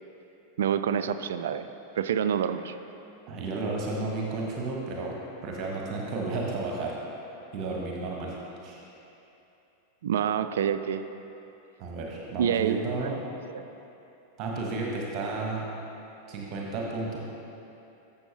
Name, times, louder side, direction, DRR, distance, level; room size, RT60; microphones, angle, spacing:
voice 1, 0.6-1.7 2.0-2.7 10.0-11.0 12.4-13.1 13.5-13.6, right 8 dB, 60° right, 11 dB, 0.3 m, -27 dB
voice 2, 3.3-6.9 7.5-8.3 8.6-8.8 11.8-13.2 14.4-15.7 16.3-17.2, right 3 dB, 35° right, -2 dB, 1.2 m, -32 dB
12.0 x 7.1 x 2.9 m, 2.9 s
figure-of-eight pair, 90°, 0 cm